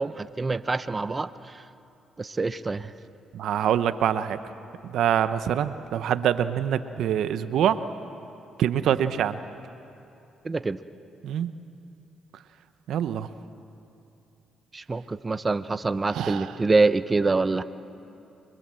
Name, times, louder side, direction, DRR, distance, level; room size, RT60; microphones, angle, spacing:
voice 1, 0.0-1.6 2.2-2.9 10.4-10.8 14.7-17.6, right 3 dB, 25° right, 12 dB, 0.7 m, -25 dB
voice 2, 3.3-4.4 4.9-7.8 8.6-9.4 11.2-11.5 12.9-13.3 16.1-16.5, right 10 dB, 75° right, 12 dB, 0.8 m, -25 dB
26.0 x 23.5 x 7.7 m, 2.7 s
cardioid pair, 90°, 0 cm